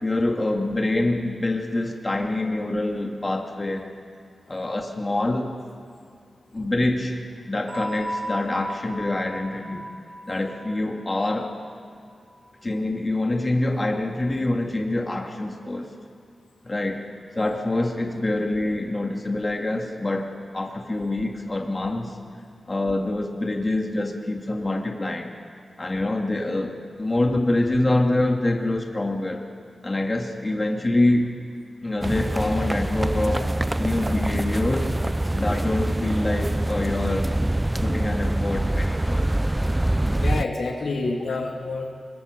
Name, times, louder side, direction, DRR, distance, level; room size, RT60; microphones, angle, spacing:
voice 1, 0.0-3.9 4.5-5.5 6.5-7.2 7.5-9.9 10.3-11.5 12.6-15.9 16.6-17.0 17.3-22.1 22.7-25.3 25.8-29.4 29.8-31.3 31.8-33.5 33.8-34.9 35.3-37.4 37.8-39.3 41.3-41.4, left 2 dB, 30° left, 2 dB, 2.6 m, -25 dB
sound 1, 7.7-12.3, equal, 75° right, 7.2 m, -35 dB
sound 2, 32.0-40.4, right 1 dB, 20° right, 0.5 m, -25 dB
voice 2, 40.2-41.9, left 3 dB, 85° left, 0 dB, 2.6 m, -28 dB
25.5 x 22.5 x 5.4 m, 2.1 s
cardioid pair, 55°, 0 cm